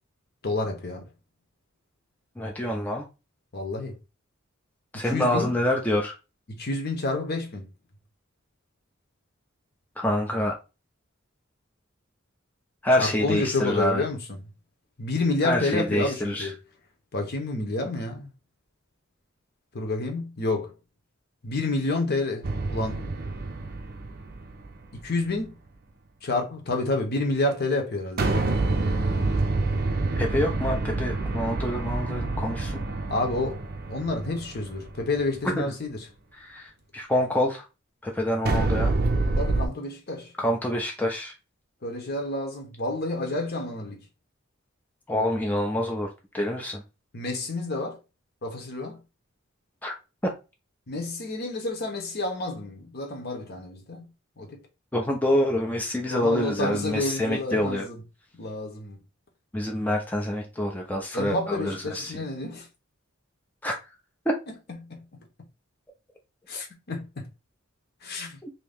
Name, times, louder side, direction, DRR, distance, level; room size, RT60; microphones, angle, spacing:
voice 1, 0.4-1.0 3.5-3.9 5.0-5.5 6.6-7.6 13.0-14.4 15.0-16.5 17.1-18.3 19.7-20.7 21.4-23.1 25.0-25.5 26.2-28.3 33.1-33.6 33.9-36.0 39.4-40.3 41.8-44.0 47.1-48.0 48.4-49.0 50.9-54.0 54.4-54.6 56.0-58.0 58.4-59.0 61.1-62.7 64.9-65.0 66.5-67.2 68.0-68.4, left 2 dB, 50° left, 0.9 m, -29 dB
voice 2, 2.4-3.1 4.9-6.1 10.0-10.5 12.8-14.0 15.4-16.5 30.2-32.8 35.6-35.7 36.4-37.6 38.0-38.9 40.4-41.3 45.1-46.1 46.3-46.8 49.8-49.9 54.9-57.9 59.5-62.1 63.6-63.8 68.4-68.5, left 1 dB, 10° left, 0.5 m, -26 dB
sound 1, 22.4-25.0 28.2-35.4 38.5-39.7, right 3 dB, 50° right, 0.5 m, -27 dB
2.9 x 2.7 x 3.4 m
head